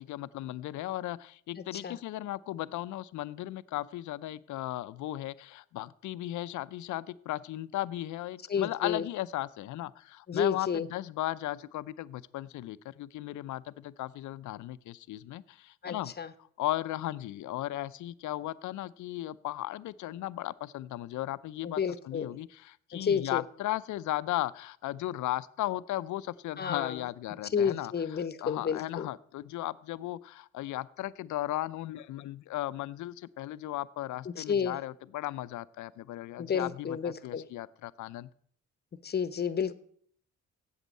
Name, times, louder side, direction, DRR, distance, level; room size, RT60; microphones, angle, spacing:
voice 1, 0.0-16.1 16.6-21.8 22.1-27.9 28.4-38.3, left 15 dB, 75° left, 16 dB, 0.5 m, -36 dB
voice 2, 1.6-2.0 8.5-9.0 10.3-10.9 15.8-16.3 21.6-22.3 22.9-23.4 26.6-27.0 27.5-29.1 34.3-34.8 36.4-37.5 39.0-39.7, left 7 dB, 35° left, 15 dB, 0.8 m, -31 dB
8.2 x 8.0 x 7.5 m, 0.63 s
cardioid pair, 90°, 30 cm